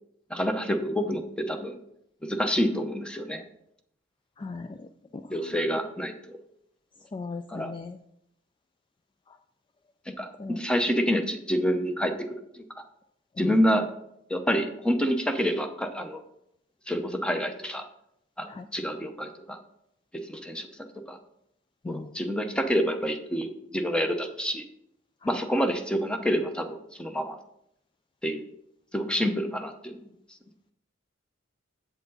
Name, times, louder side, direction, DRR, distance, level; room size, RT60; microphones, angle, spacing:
voice 1, 0.3-1.8 2.2-3.4 5.3-6.4 7.5-7.7 10.2-12.2 12.6-12.7 13.4-13.9 14.3-16.2 16.9-17.8 18.4-19.6 20.3-20.7 21.1-21.2 21.9-24.6 25.3-27.4 28.2-28.4 28.9-30.0, equal, 5° left, 6 dB, 0.8 m, -27 dB
voice 2, 4.4-5.6 7.1-8.0 9.3-9.4 10.4-10.7 13.4-13.5 18.5-18.7 21.8-22.2 25.2-25.4, left 4 dB, 25° left, 9 dB, 0.3 m, -39 dB
8.2 x 7.8 x 3.9 m, 0.76 s
head